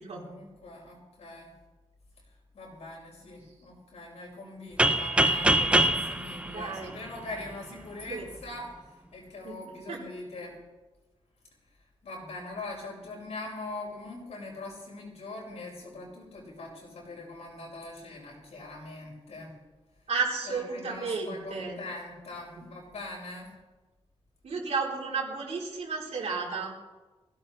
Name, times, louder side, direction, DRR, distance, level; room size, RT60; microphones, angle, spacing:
voice 1, 0.0-1.5 2.5-8.7 9.1-10.5 12.0-19.5 20.4-23.5, left 2 dB, 85° left, -3 dB, 6.1 m, -42 dB
sound 1, 4.8-7.5, right 1 dB, 10° right, 0.7 m, -24 dB
voice 2, 6.4-6.9 8.1-8.3 9.4-9.6 9.9-10.0 20.1-21.8 24.4-26.7, right 4 dB, 85° right, -2 dB, 4.0 m, -32 dB
20.5 x 16.5 x 3.4 m, 1.2 s
wide cardioid pair, 150°, 11 cm